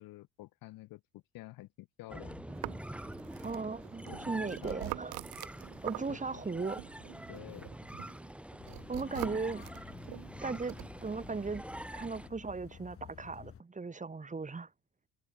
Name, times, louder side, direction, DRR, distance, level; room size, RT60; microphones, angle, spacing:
voice 1, 0.0-2.5 4.0-4.8 6.1-6.4 7.3-7.7 9.2-9.3, left 18 dB, 65° left, 1.6 m, -50 dB
sound 1, 2.1-12.3, right 1 dB, 5° right, 3.5 m, -45 dB
sound 2, 2.5-6.5 6.8-10.9, right 23 dB, 70° right, 0.8 m, -45 dB
voice 2, 3.4-5.2 5.8-6.8 8.9-9.6 10.4-11.6 11.9-14.7, right 4 dB, 20° right, 2.7 m, -37 dB
sound 3, 8.6-13.6, left 8 dB, 35° left, 2.7 m, -52 dB
supercardioid pair, 90°, 36 cm